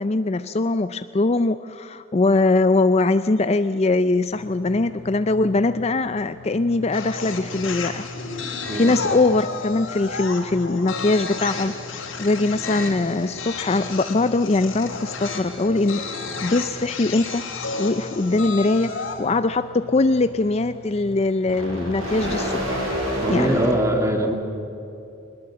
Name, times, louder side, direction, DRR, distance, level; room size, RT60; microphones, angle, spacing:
voice 1, 0.0-8.1 8.4-11.8 12.2-16.1 16.4-17.4 17.8-22.9 23.3-23.6, left 2 dB, 30° left, 12 dB, 0.4 m, -22 dB
sound 1, 4.3-23.7, equal, 80° right, 7.8 m, -35 dB
sound 2, 6.9-19.2, left 4 dB, 70° left, 3.5 m, -32 dB
voice 2, 23.2-24.3, right 1 dB, 15° right, 3 dB, 2.5 m, -22 dB
22.0 x 20.5 x 7.7 m, 2.8 s
head